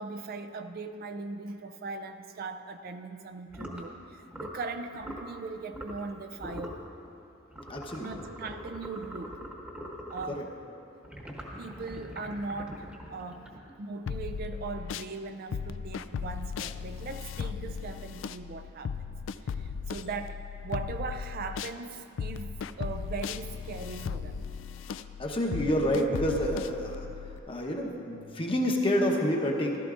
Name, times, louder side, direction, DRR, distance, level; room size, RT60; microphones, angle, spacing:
voice 1, 0.0-6.9 8.0-9.4 10.1-10.5 11.6-19.1 19.4-24.4, right 4 dB, 50° right, 9 dB, 0.4 m, -39 dB
sound 1, 3.5-3.8 4.3-4.6 5.0-5.3 5.7-6.1 6.4-6.8 7.5-10.4 11.0-13.9, equal, 5° right, 1.1 m, -42 dB
voice 2, 7.7-8.1 10.3-10.4 25.2-27.1 27.5-29.8, equal, 25° left, 1 dB, 0.9 m, -28 dB
sound 2, 14.1-15.1 15.5-21.8 22.2-27.4, left 6 dB, 65° left, 0.3 m, -37 dB
15.0 x 12.5 x 2.5 m, 2.9 s
head